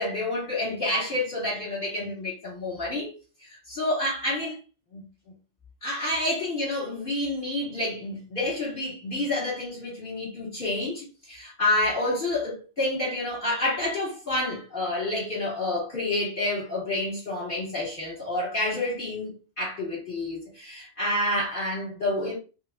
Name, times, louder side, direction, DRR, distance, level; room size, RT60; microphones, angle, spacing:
voice 1, 0.0-3.1 3.4-4.6 4.9-5.0 5.8-19.3 19.6-22.4, left 1 dB, 40° left, 1.9 m, -29 dB
5.8 x 2.3 x 2.3 m
omnidirectional pair, 1.4 m